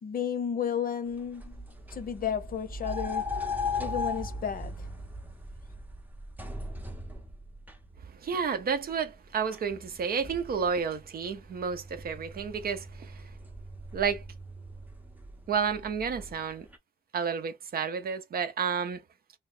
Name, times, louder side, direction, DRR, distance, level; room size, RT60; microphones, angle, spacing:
voice 1, 0.0-1.6 1.9-3.3 3.8-4.9, left 8 dB, 45° left, 0.7 m, -32 dB
sound 1, 1.1-16.8, left 3 dB, 10° right, 0.7 m, -39 dB
voice 2, 8.2-13.2 13.9-14.2 15.5-16.7 17.1-19.0, right 6 dB, 50° right, 0.6 m, -31 dB
2.9 x 2.3 x 4.2 m
cardioid pair, 90°, 20 cm